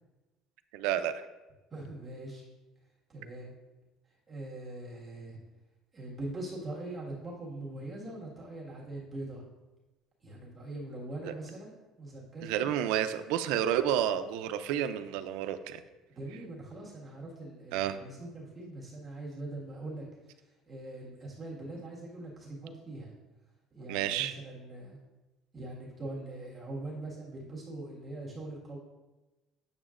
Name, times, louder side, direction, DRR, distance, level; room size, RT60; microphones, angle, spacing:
voice 1, 0.7-1.3 11.2-11.3 12.4-15.8 17.7-18.0 23.9-24.4, right 10 dB, 85° right, 11 dB, 0.4 m, -30 dB
voice 2, 1.7-2.4 3.1-3.5 4.3-5.4 5.9-9.4 10.2-12.8 16.1-23.1 23.7-25.0 25.5-28.8, right 2 dB, 20° right, -5 dB, 1.7 m, -42 dB
8.8 x 7.1 x 2.5 m, 1.1 s
cardioid pair, 150°, 0 cm